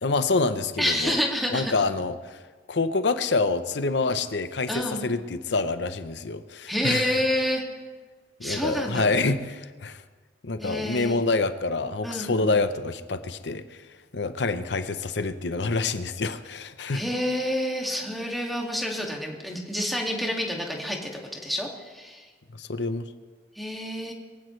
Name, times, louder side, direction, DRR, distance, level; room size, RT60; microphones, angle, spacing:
voice 1, 0.0-1.2 1.5-2.4 2.7-7.1 8.4-10.0 10.4-13.6 14.1-17.1 22.6-23.0, left 3 dB, 70° left, 10 dB, 0.8 m, -27 dB
voice 2, 0.8-1.7 4.7-5.1 6.7-7.6 8.4-9.1 10.6-11.2 12.0-12.5 16.9-22.2 23.6-24.1, equal, ahead, -1 dB, 2.2 m, -28 dB
22.0 x 15.5 x 3.3 m, 1.4 s
head